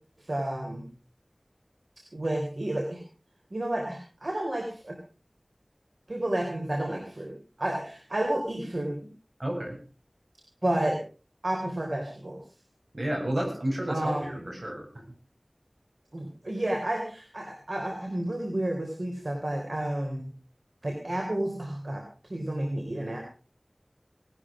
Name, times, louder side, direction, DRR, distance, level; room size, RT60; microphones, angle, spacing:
voice 1, 0.2-0.9 2.1-3.0 3.5-5.0 6.1-9.1 10.6-11.0 11.4-12.4 13.9-14.6 16.1-20.3 20.8-22.0 22.3-23.2, right 1 dB, 80° right, 2 dB, 3.6 m, -31 dB
voice 2, 9.4-9.8 12.9-14.9, right 1 dB, 65° right, 1 dB, 7.6 m, -31 dB
18.5 x 12.5 x 5.0 m, 0.37 s
wide cardioid pair, 40°, 0 cm